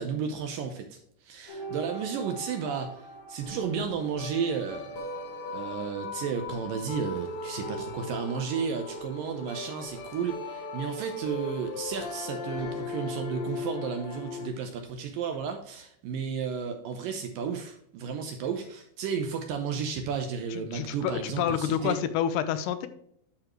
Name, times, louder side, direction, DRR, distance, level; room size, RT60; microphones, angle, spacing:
voice 1, 0.0-5.0 5.5-22.0, right 6 dB, 75° right, 5 dB, 2.1 m, -33 dB
sound 1, 1.5-14.5, left 2 dB, 50° left, 1.8 m, -38 dB
voice 2, 20.7-22.9, left 9 dB, 90° left, 11 dB, 2.8 m, -28 dB
11.5 x 4.7 x 3.1 m, 0.70 s
omnidirectional pair, 4.7 m